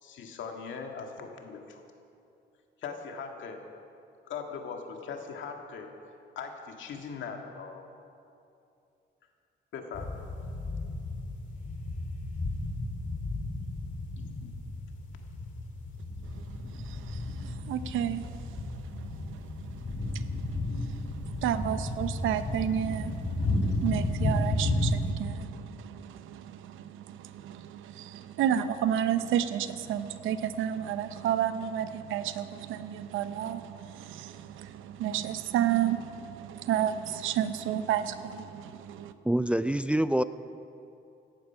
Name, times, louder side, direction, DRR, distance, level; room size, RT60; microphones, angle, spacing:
voice 1, 0.0-1.8 2.8-3.7 4.3-5.9 6.4-7.9 9.7-10.1 14.4-14.5, left 5 dB, 75° left, 3 dB, 1.9 m, -40 dB
sound 1, 9.9-25.1, left 2 dB, 40° left, 2.5 m, -33 dB
voice 2, 16.4-39.1, right 10 dB, 85° right, 12 dB, 0.8 m, -32 dB
voice 3, 39.2-40.2, right 1 dB, 5° right, 13 dB, 0.4 m, -25 dB
16.5 x 11.5 x 5.7 m, 2.6 s
cardioid pair, 90°, 20 cm